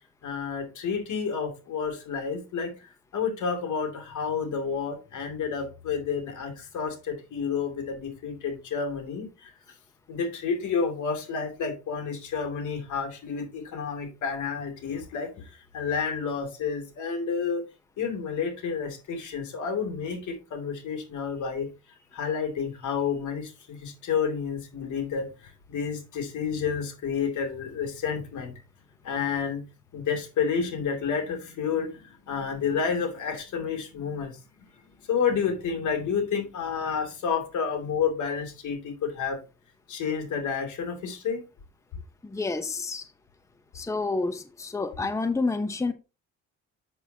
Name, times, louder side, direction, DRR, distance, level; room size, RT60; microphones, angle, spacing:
voice 1, 0.2-9.5 10.1-17.6 18.0-21.7 22.1-28.6 29.0-29.6 29.9-34.4 34.8-39.4 39.9-41.4, left 6 dB, 75° left, 2.6 m, -30 dB
voice 2, 42.2-43.1 43.7-45.9, left 3 dB, 10° left, 0.8 m, -29 dB
7.9 x 6.9 x 2.8 m
cardioid pair, 90°, 30 cm